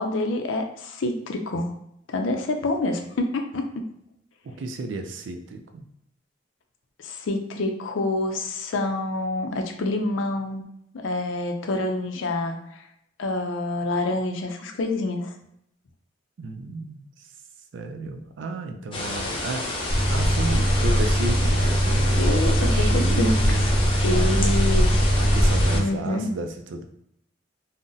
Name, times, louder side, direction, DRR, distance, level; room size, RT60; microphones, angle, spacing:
voice 1, 0.0-1.7 2.1-3.9 7.0-10.6 10.9-12.8 13.2-15.3 22.1-23.3 24.0-25.1 25.7-26.3, left 2 dB, 85° left, 4 dB, 0.4 m, -27 dB
voice 2, 4.4-5.9 16.4-17.3 17.7-19.7 20.1-23.7 24.0-24.7 25.2-26.8, right 2 dB, 70° right, 5 dB, 0.4 m, -32 dB
sound 1, 18.9-25.8, left 2 dB, 30° left, 0.5 m, -30 dB
sound 2, 19.9-25.8, equal, 5° right, 1.3 m, -21 dB
3.8 x 2.1 x 2.5 m, 0.76 s
head